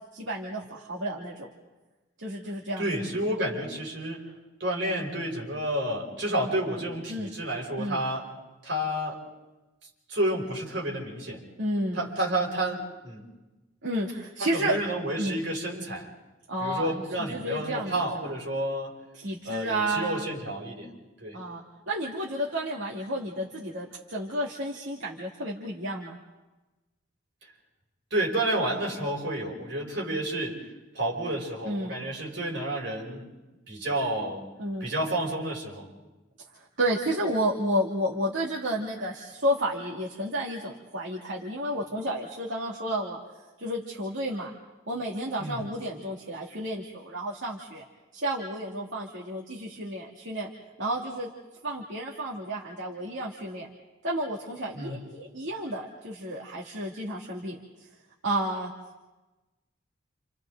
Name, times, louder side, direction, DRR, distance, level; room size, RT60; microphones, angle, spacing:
voice 1, 0.1-1.5 2.2-2.9 7.1-7.3 7.8-8.0 11.6-12.0 13.8-14.8 15.2-15.4 16.5-17.9 18.2-18.3 19.1-20.3 21.3-26.2 31.7-32.0 34.6-34.9 36.6-43.2 43.6-44.5 44.9-47.8 48.1-50.5 50.8-51.3 51.6-53.7 54.0-57.6 58.2-58.7, right 1 dB, 80° right, -4 dB, 2.6 m, -31 dB
voice 2, 2.8-4.3 4.6-8.3 8.6-9.2 10.1-11.4 11.9-13.2 14.4-16.1 16.6-19.0 19.4-20.9 21.2-21.4 28.1-30.7 30.9-33.2 33.7-34.4 34.8-35.9 45.4-45.6 54.7-55.0, right 1 dB, 65° right, -2 dB, 6.0 m, -30 dB
30.0 x 29.5 x 3.9 m, 1.1 s
head